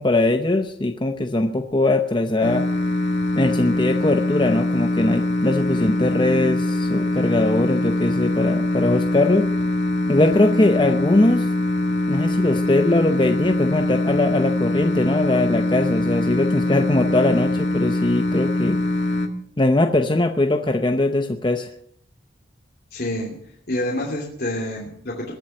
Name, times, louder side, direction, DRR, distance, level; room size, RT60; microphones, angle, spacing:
voice 1, 0.0-2.7 3.4-9.5 10.1-11.5 12.1-18.8 19.6-21.7, left 2 dB, 25° left, 6 dB, 0.7 m, -21 dB
sound 1, 2.4-19.3, left 1 dB, 80° left, 1.7 m, -23 dB
voice 2, 22.9-23.3 23.7-25.3, left 1 dB, 55° left, -2 dB, 2.9 m, -27 dB
21.5 x 7.5 x 7.7 m, 0.69 s
head